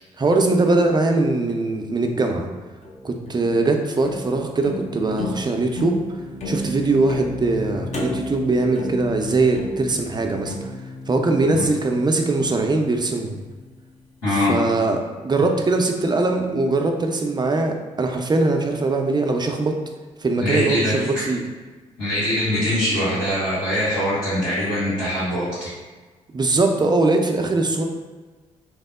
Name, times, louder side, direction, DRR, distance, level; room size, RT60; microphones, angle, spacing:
voice 1, 0.2-2.5 3.0-6.0 6.5-10.7 11.1-13.4 14.3-19.8 20.2-21.4 26.3-27.9, right 3 dB, 25° right, 4 dB, 0.5 m, -21 dB
sound 1, 2.8-14.0, left 2 dB, 40° left, 0.7 m, -33 dB
voice 2, 14.2-14.6 20.4-21.2 22.0-25.7, left 1 dB, 90° left, -16 dB, 1.3 m, -23 dB
2.9 x 2.0 x 3.5 m, 1.3 s
hypercardioid pair, 40°, 17 cm